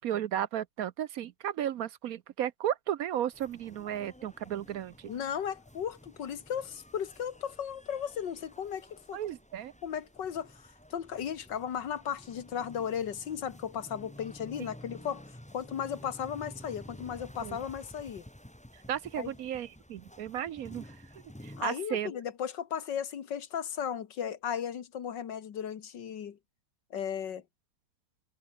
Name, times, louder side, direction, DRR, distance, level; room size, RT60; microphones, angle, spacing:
voice 1, 0.0-5.1 9.1-9.7 17.4-17.6 18.9-20.9 21.4-22.1, right 10 dB, 65° right, 1.0 m, -34 dB
sound 1, 3.3-21.6, equal, 5° left, 2.5 m, -51 dB
voice 2, 5.1-9.2 9.8-10.6 10.9-15.2 15.5-18.3 19.2-19.3 21.6-26.4 26.9-27.4, left 8 dB, 90° left, 2.1 m, -35 dB
omnidirectional pair, 1.9 m